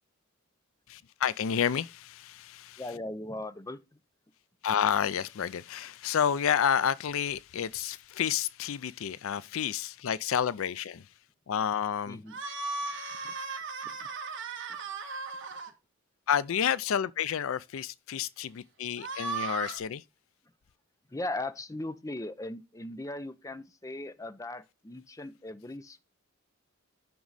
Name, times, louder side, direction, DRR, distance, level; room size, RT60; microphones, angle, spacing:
voice 1, 0.9-2.8 4.6-11.0 11.5-12.2 16.3-20.0, left 8 dB, 65° left, 0.4 m, -30 dB
voice 2, 2.8-3.8 12.1-12.4 13.2-13.3 13.8-14.1 14.7-14.8 21.1-26.0, left 2 dB, 15° left, 0.5 m, -38 dB
sound 1, 12.3-15.7 19.0-19.8, right 4 dB, 55° right, 1.6 m, -36 dB
9.4 x 6.1 x 4.0 m
head